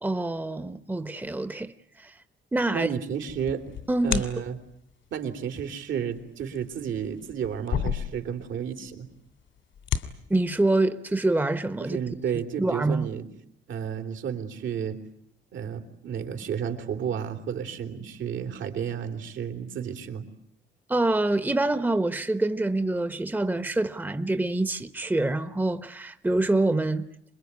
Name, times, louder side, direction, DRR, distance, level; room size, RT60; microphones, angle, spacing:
voice 1, 0.0-2.1 2.5-2.9 3.9-4.2 10.3-12.0 12.6-13.1 20.9-27.1, right 2 dB, 10° right, 1.2 m, -26 dB
voice 2, 2.7-3.6 4.0-4.6 5.1-9.1 11.8-13.3 13.7-15.0 15.5-20.3, right 8 dB, 70° right, 3.4 m, -32 dB
sound 1, 3.2-4.7 6.2-8.7 8.9-9.0 9.6-10.1, left 8 dB, 75° left, 2.7 m, -31 dB
26.5 x 21.5 x 9.7 m
cardioid pair, 90°, 20 cm